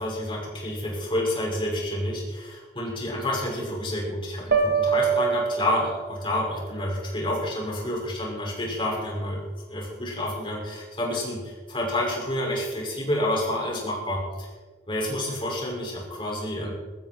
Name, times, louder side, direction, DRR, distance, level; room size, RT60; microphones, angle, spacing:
voice 1, 0.0-9.4 9.7-14.5 14.9-16.7, left 1 dB, 30° left, -3 dB, 5.8 m, -29 dB
sound 1, 4.5-6.4, right 6 dB, 65° right, 2.4 m, -24 dB
21.5 x 14.5 x 4.5 m, 1.3 s
head